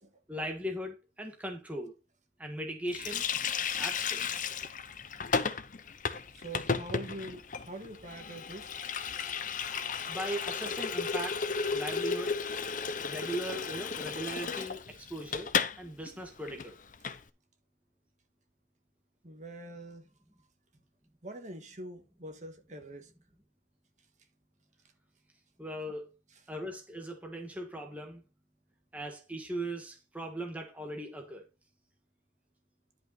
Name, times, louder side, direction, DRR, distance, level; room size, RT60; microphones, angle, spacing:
voice 1, 0.3-1.9 2.4-3.2 3.8-4.4 10.1-11.4 11.7-12.4 13.0-15.5 15.8-16.8 25.6-26.0 26.5-28.2 28.9-31.4, right 1 dB, 10° right, 1.5 m, -39 dB
Water tap faucet, 2.9-15.8 16.0-16.2 16.5-17.2, left 5 dB, 45° left, 0.7 m, -34 dB
voice 2, 6.3-8.7 19.2-20.1 21.2-23.1 26.3-26.4, right 1 dB, 40° right, 1.8 m, -44 dB
11.0 x 5.6 x 4.0 m
head